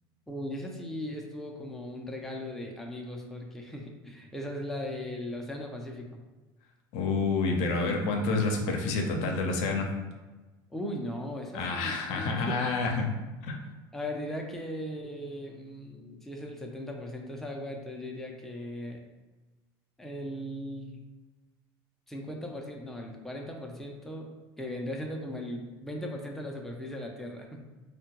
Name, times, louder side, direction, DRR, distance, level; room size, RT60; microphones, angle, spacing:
voice 1, 0.3-6.2 10.7-12.6 13.9-19.0 20.0-21.1 22.1-24.3 24.6-27.6, left 1 dB, ahead, 0 dB, 0.5 m, -38 dB
voice 2, 6.9-9.9 11.5-13.1 13.4-13.5, left 3 dB, 65° left, 2 dB, 0.6 m, -28 dB
3.6 x 2.2 x 2.8 m, 1.2 s
hypercardioid pair, 80°, 12 cm